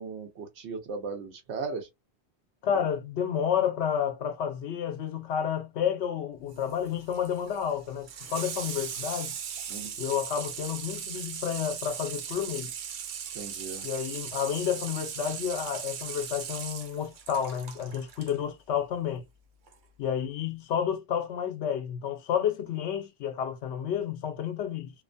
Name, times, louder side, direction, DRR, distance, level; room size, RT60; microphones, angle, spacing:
voice 1, 0.0-1.9 2.7-2.8 9.7-9.9 13.3-13.9, right 4 dB, 85° right, 1.0 m, -37 dB
voice 2, 2.6-9.3 10.0-12.7 13.8-19.2 20.0-24.9, left 8 dB, 85° left, 0.9 m, -30 dB
Water tap faucet / Sink (filling or washing), 6.5-18.4 19.7-19.8, right 8 dB, 60° right, 0.6 m, -38 dB
2.7 x 2.1 x 2.5 m
omnidirectional pair, 1.1 m